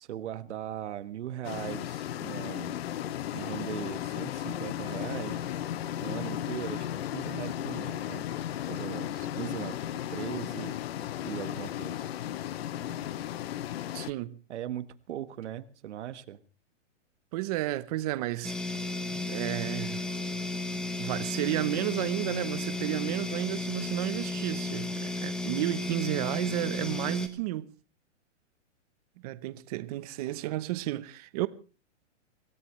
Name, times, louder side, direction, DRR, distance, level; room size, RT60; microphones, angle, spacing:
voice 1, 0.0-2.8 3.3-5.6 6.0-6.9 7.1-8.3 8.7-9.8 10.1-10.8 11.2-12.1 14.5-16.4, right 11 dB, 65° right, 1.4 m, -39 dB
sound 1, 1.4-14.1, left 11 dB, 55° left, 0.8 m, -35 dB
voice 2, 13.9-14.4 17.3-18.6 19.3-20.0 21.0-27.7 29.2-31.5, right 16 dB, 30° right, 0.8 m, -32 dB
sound 2, 18.4-27.3, left 3 dB, ahead, 0.8 m, -34 dB
25.0 x 17.0 x 3.2 m
hypercardioid pair, 160°, 37 cm